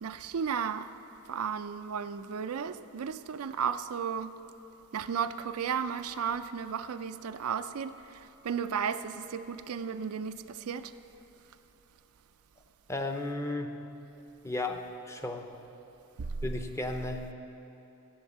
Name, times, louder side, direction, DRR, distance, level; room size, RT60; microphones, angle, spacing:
voice 1, 0.0-0.9 1.3-4.3 4.9-10.9 16.2-16.3, right 7 dB, 80° right, 11 dB, 0.4 m, -34 dB
voice 2, 12.9-13.8 14.4-15.5 16.4-17.3, left 2 dB, 15° left, 5 dB, 0.6 m, -34 dB
14.0 x 8.0 x 7.2 m, 3.0 s
head